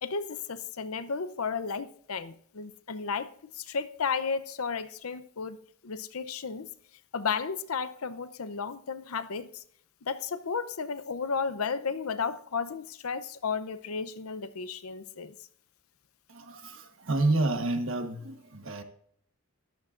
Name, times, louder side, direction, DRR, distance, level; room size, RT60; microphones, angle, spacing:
voice 1, 0.0-6.7 7.1-9.6 10.0-15.3, left 5 dB, 85° left, 0.7 m, -33 dB
voice 2, 16.3-18.8, right 2 dB, 65° right, 1.3 m, -29 dB
13.5 x 12.5 x 2.5 m
head